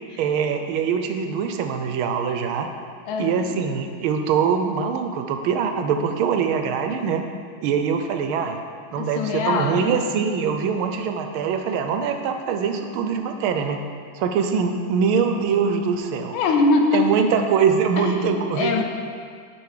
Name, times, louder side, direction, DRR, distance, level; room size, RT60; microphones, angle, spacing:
voice 1, 0.2-2.7 3.2-7.3 7.6-8.6 8.9-13.8 14.1-16.4 16.9-18.8, right 6 dB, 80° right, 6 dB, 1.4 m, -23 dB
voice 2, 3.1-3.6 9.0-10.0 16.3-17.3 18.0-18.8, left 3 dB, 75° left, 3 dB, 1.4 m, -23 dB
9.8 x 3.6 x 4.8 m, 2.1 s
omnidirectional pair, 2.3 m